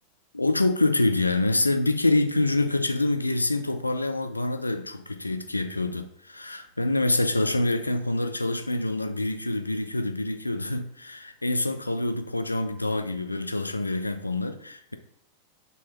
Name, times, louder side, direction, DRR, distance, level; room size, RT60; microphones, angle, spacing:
voice 1, 0.3-14.9, left 2 dB, 85° left, 0.4 m, -26 dB
6.3 x 2.8 x 3.0 m
figure-of-eight pair, 90°, 0 cm